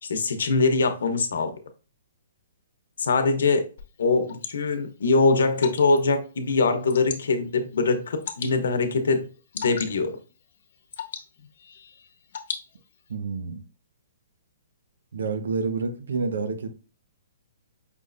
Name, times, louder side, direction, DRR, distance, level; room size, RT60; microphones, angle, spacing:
voice 1, 0.0-1.5 3.0-3.7 4.0-9.3 9.5-10.2, left 3 dB, 80° left, 0.9 m, -23 dB
Water / Drip, 3.8-13.2, left 7 dB, 55° left, 0.9 m, -41 dB
voice 2, 13.1-13.6 15.1-16.7, right 4 dB, 85° right, 0.8 m, -28 dB
5.3 x 3.2 x 2.6 m
hypercardioid pair, 160°, 0 cm